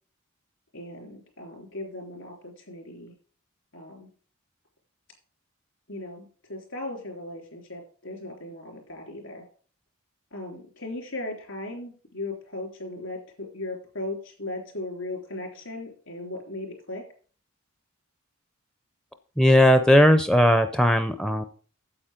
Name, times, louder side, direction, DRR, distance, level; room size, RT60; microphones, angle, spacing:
voice 1, 0.7-3.1 3.7-4.1 5.9-9.5 10.3-17.1, left 2 dB, 65° left, 2 dB, 3.6 m, -37 dB
voice 2, 19.4-21.4, equal, 5° left, 9 dB, 0.5 m, -18 dB
8.8 x 7.9 x 5.0 m, 0.43 s
head